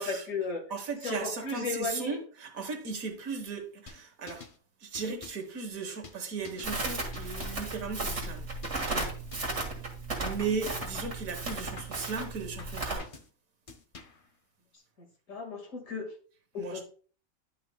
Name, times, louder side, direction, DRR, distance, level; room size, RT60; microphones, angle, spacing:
voice 1, 0.0-0.6 1.0-2.2 15.3-16.0 16.5-16.8, left 4 dB, 70° left, 2.3 m, -34 dB
voice 2, 0.7-4.4 4.8-8.5 8.8-9.1 10.2-13.1 16.6-16.8, right 4 dB, 80° right, 1.6 m, -36 dB
sound 1, 3.9-4.6 4.9-5.5 6.0-6.7 7.1-7.7 8.2-8.4 8.6-8.9 9.3-9.9 10.4-11.1 11.5-12.1 12.6-13.3 13.7-14.3, left 4 dB, 40° left, 0.4 m, -48 dB
Crackle, 6.6-13.0, right 2 dB, 55° right, 2.2 m, -35 dB
10.5 x 5.7 x 2.2 m
omnidirectional pair, 1.4 m